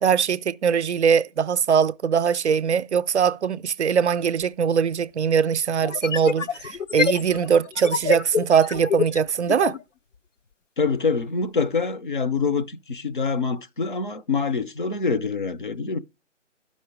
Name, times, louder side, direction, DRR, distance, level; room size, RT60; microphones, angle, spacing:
voice 1, 0.0-9.8, right 7 dB, 65° right, 0.5 m, -21 dB
sound 1, 4.4-4.5 5.8-9.8, left 6 dB, 75° left, 0.8 m, -27 dB
voice 2, 10.8-16.0, left 5 dB, 45° left, 0.5 m, -25 dB
11.5 x 5.6 x 4.7 m
figure-of-eight pair, 155°, 37 cm